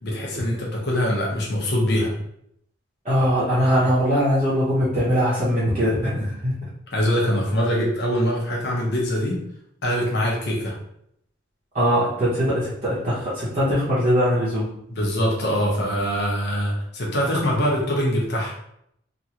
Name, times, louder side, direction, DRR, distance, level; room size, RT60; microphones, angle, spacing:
voice 1, 0.0-2.1 6.9-9.4 9.8-10.7 14.9-18.5, equal, 55° left, -2 dB, 0.8 m, -23 dB
voice 2, 3.0-6.5 11.7-14.7, equal, 35° right, -10 dB, 0.8 m, -21 dB
3.0 x 2.5 x 2.9 m, 0.75 s
head